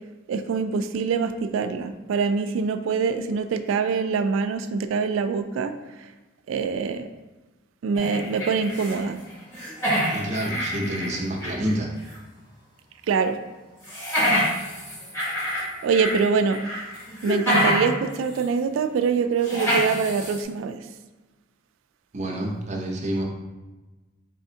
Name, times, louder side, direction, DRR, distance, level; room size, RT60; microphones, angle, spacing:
voice 1, 0.3-5.7 6.5-7.1 7.8-9.2 13.1-13.4 15.5-16.6 17.2-20.8, right 5 dB, 80° right, 9 dB, 0.3 m, -24 dB
sound 1, 7.9-9.0 9.3-11.7 12.1-12.2 13.8-16.2 16.5-18.0 18.3-18.4 19.4-20.4, equal, 15° left, 0.9 m, -26 dB
voice 2, 10.1-11.9 22.1-23.2, right 1 dB, 35° right, 0 dB, 0.6 m, -28 dB
4.1 x 3.5 x 2.7 m, 1.2 s
head